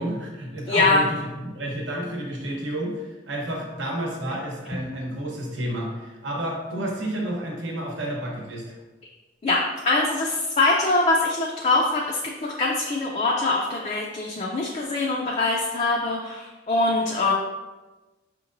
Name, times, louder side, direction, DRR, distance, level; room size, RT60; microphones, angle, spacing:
voice 1, 0.0-8.8, right 1 dB, 80° right, -1 dB, 0.9 m, -30 dB
voice 2, 0.7-1.0 4.3-4.4 9.4-17.3, left 2 dB, 35° left, -2 dB, 0.4 m, -23 dB
5.5 x 2.9 x 2.5 m, 1.2 s
head